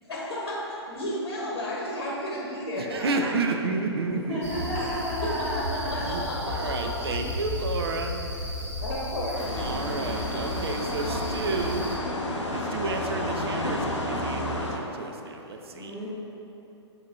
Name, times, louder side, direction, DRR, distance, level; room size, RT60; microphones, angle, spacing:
voice 1, 0.0-3.1 4.7-4.9 5.2-6.9 8.8-9.6, left 1 dB, 65° left, -5 dB, 0.9 m, -33 dB
voice 2, 2.8-4.7 5.9-8.2 9.6-11.8 12.5-15.9, right 3 dB, 60° right, 4 dB, 0.4 m, -31 dB
voice 3, 4.1-6.0 15.7-16.1, equal, 10° left, -12 dB, 0.7 m, -32 dB
sound 1, 4.4-12.0, left 1 dB, 85° right, 1.1 m, -34 dB
sound 2, 9.3-14.8, left 1 dB, 90° left, 0.6 m, -31 dB
6.7 x 2.7 x 2.8 m, 2.9 s
figure-of-eight pair, 120°, 15 cm